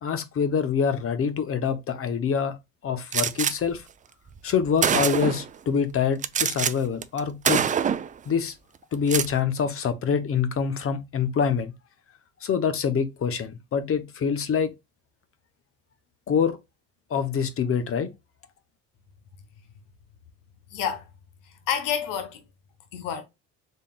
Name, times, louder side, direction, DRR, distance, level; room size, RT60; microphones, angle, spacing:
voice 1, 0.0-2.6 2.8-3.8 4.4-7.7 8.3-8.6 8.9-11.7 12.4-14.7 16.3-16.6 17.1-18.1, left 6 dB, 40° left, 0.9 m, -25 dB
Gunshot gunfire, 3.1-3.5 4.4-4.5 4.8-5.5 6.2-6.7 7.0-7.2 7.4-8.1 8.9-9.3, right 8 dB, 25° right, 0.3 m, -24 dB
voice 2, 20.7-21.1 21.4-22.4 22.9-23.2, left 8 dB, 75° left, 1.1 m, -29 dB
4.3 x 3.4 x 2.3 m
supercardioid pair, 90°, 33 cm